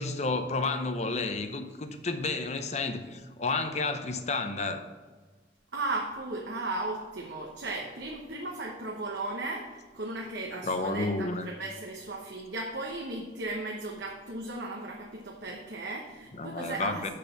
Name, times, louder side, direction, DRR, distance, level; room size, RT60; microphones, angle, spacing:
voice 1, 0.0-4.8 10.7-11.5 16.3-17.1, left 3 dB, 40° left, 7 dB, 0.7 m, -31 dB
voice 2, 5.7-17.1, right 2 dB, 75° right, 0 dB, 1.0 m, -36 dB
6.6 x 5.8 x 6.9 m, 1.3 s
head